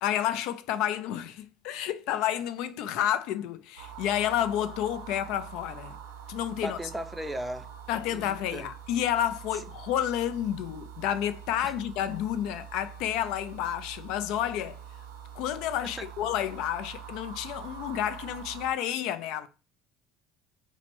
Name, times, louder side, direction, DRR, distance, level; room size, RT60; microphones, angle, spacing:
voice 1, 0.0-6.0 6.3-6.8 7.9-14.8 15.4-19.5, left 11 dB, 70° left, 0.3 m, -30 dB
sound 1, 3.8-18.7, right 8 dB, 85° right, 0.5 m, -45 dB
voice 2, 6.6-7.7 8.1-8.7 9.5-9.7 11.6-11.7 15.8-16.1, equal, 5° right, 0.5 m, -37 dB
3.2 x 2.0 x 2.9 m
hypercardioid pair, 75°, 0 cm